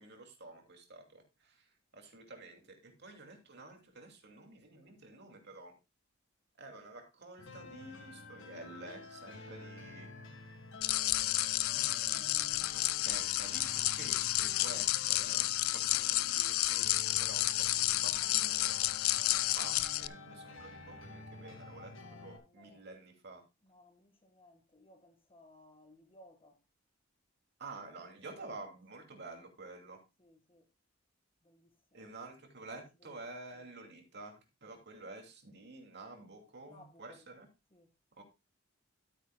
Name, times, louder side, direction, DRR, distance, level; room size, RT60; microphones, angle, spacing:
voice 1, 0.0-5.8 6.6-10.1 11.7-19.0 19.3-23.4 27.6-30.0 31.9-37.5 38.1-38.2, right 2 dB, 55° right, 2.6 m, -50 dB
sound 1, 7.4-22.4, left 2 dB, 65° left, 1.7 m, -50 dB
sound 2, 10.8-20.1, left 16 dB, 85° left, 0.5 m, -31 dB
voice 2, 22.0-22.9 23.6-26.6 30.2-30.7 31.4-32.1 32.7-33.7 36.6-37.3 37.7-37.9, left 1 dB, 25° left, 1.7 m, -62 dB
13.0 x 9.0 x 2.3 m
head